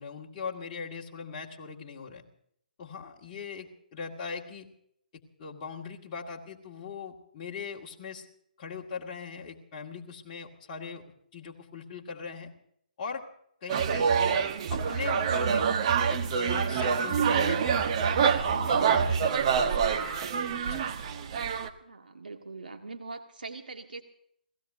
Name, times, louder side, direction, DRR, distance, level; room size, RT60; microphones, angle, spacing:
voice 1, 0.0-2.2 2.8-4.7 5.4-8.3 8.6-12.5 13.0-13.2 13.6-14.4 14.7-15.7 16.1-17.9 18.3-20.1 20.6-20.8, left 5 dB, 30° left, -2 dB, 2.1 m, -40 dB
monday night crazy, 13.7-21.7, right 6 dB, 40° right, 1.3 m, -26 dB
voice 2, 21.8-24.0, right 3 dB, 75° right, 4 dB, 1.6 m, -42 dB
29.5 x 17.5 x 2.7 m, 0.69 s
figure-of-eight pair, 140°, 5 cm